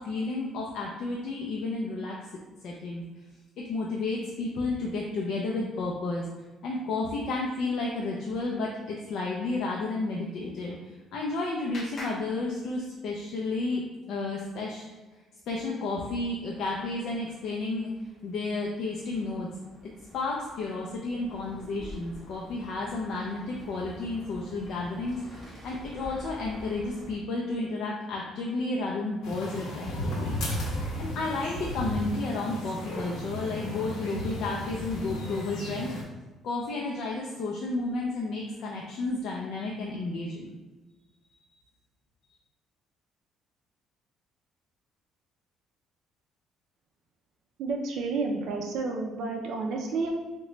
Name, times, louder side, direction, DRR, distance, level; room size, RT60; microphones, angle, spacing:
voice 1, 0.0-2.2 2.6-3.0 3.6-6.3 6.6-14.9 15.5-17.9 18.2-19.5 20.1-30.6 31.0-35.9 36.4-40.5, left 3 dB, 55° left, -2 dB, 0.4 m, -32 dB
Clapping, 10.6-13.2, left 1 dB, 40° left, 0.8 m, -46 dB
sound 1, 15.8-27.2, left 1 dB, 10° left, 1.2 m, -49 dB
sound 2, 29.2-36.0, equal, 80° left, 0.8 m, -34 dB
voice 2, 47.6-50.1, right 3 dB, 60° right, 1 dB, 0.4 m, -30 dB
3.7 x 2.1 x 3.0 m, 1.2 s
cardioid pair, 170°, 0 cm